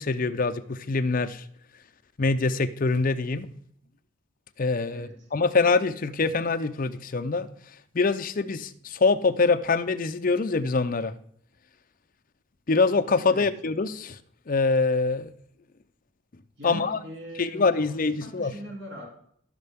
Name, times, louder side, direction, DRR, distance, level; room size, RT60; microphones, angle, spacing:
voice 1, 0.0-1.4 2.2-3.5 4.6-7.5 7.9-11.1 12.7-14.2 14.5-15.3 16.6-17.0 17.4-18.5, left 4 dB, 45° left, 10 dB, 0.6 m, -24 dB
voice 2, 4.9-5.3 13.3-13.5 16.6-19.1, equal, 70° right, -2 dB, 2.9 m, -41 dB
15.0 x 6.6 x 3.6 m, 0.65 s
head